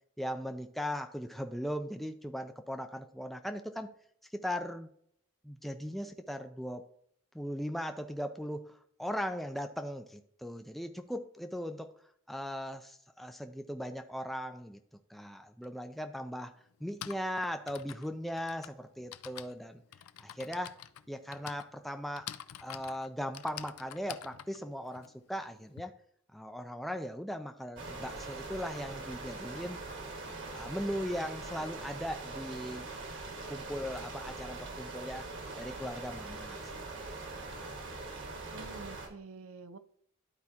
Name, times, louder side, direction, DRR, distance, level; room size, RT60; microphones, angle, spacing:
voice 1, 0.2-3.9 4.3-4.9 5.4-6.9 7.3-11.9 12.3-14.8 15.1-16.5 16.8-19.8 20.2-20.8 21.1-22.3 22.6-25.9 26.3-29.8 30.5-32.9 33.5-35.3 35.6-36.7 37.3-37.6, equal, ahead, 6 dB, 0.4 m, -38 dB
Typing, 15.6-15.7 16.7-25.8, left 10 dB, 85° left, 0.4 m, -47 dB
sound 1, 27.8-39.1, right 3 dB, 55° right, 1.4 m, -42 dB
voice 2, 38.4-39.8, right 3 dB, 70° right, 12 dB, 0.6 m, -47 dB
12.0 x 4.6 x 2.8 m, 0.67 s
head